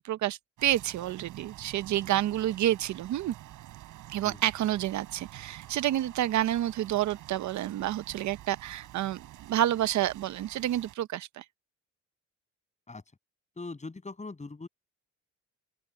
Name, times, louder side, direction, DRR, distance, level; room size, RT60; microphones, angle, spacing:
voice 1, 0.0-3.3 4.1-11.4, right 13 dB, 70° right, 0.7 m, -29 dB
sound 1, 0.6-11.0, right 14 dB, 90° right, 6.6 m, -49 dB
voice 2, 13.6-14.7, left 3 dB, 25° left, 7.8 m, -41 dB
open air
cardioid pair, 90°, 30 cm